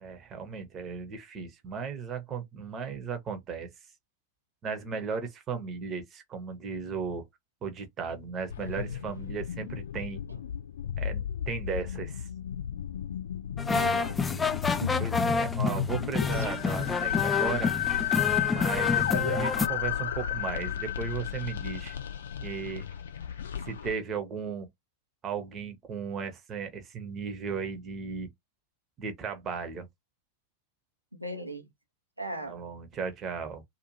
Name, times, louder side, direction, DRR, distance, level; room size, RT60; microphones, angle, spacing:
voice 1, 0.0-3.7 4.6-7.3 7.6-10.2 11.0-12.3 15.0-17.7 18.5-22.0 22.4-22.9 23.6-24.7 25.2-28.3 29.0-29.9 32.4-33.6, right 6 dB, 30° right, 0.9 m, -36 dB
sound 1, 8.5-23.9, left 10 dB, 65° left, 0.6 m, -33 dB
sound 2, 13.6-19.7, left 4 dB, 15° left, 0.3 m, -29 dB
voice 2, 13.7-14.2 14.8-15.1 31.1-31.7 32.2-32.6, equal, 90° right, 0.8 m, -37 dB
2.6 x 2.4 x 3.0 m
figure-of-eight pair, 90°, 0 cm